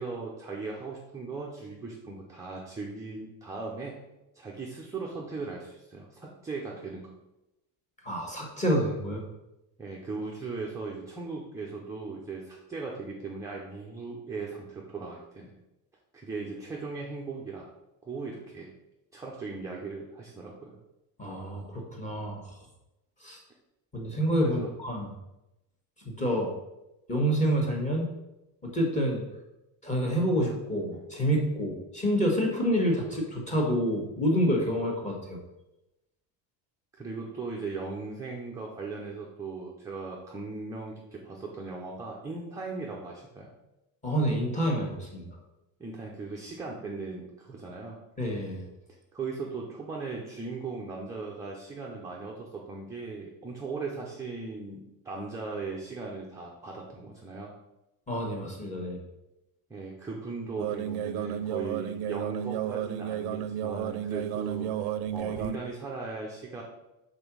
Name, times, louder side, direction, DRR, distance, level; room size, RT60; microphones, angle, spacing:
voice 1, 0.0-4.1 4.3-7.1 9.8-15.5 16.1-17.7 18.0-18.7 19.1-20.8 24.4-24.7 36.9-43.5 45.8-48.0 49.1-57.5 59.7-64.8 65.1-66.6, right 3 dB, 10° right, -3 dB, 0.4 m, -38 dB
voice 2, 8.0-9.2 21.2-22.4 23.2-23.4 23.9-25.1 26.0-26.5 27.1-28.1 28.6-29.2 29.8-35.4 44.0-45.4 48.2-48.6 58.1-59.0, equal, 15° left, 0 dB, 1.4 m, -28 dB
sound 1, 60.6-65.6, right 10 dB, 60° right, 0.5 m, -32 dB
5.3 x 3.9 x 6.0 m, 0.94 s
cardioid pair, 165°, 46 cm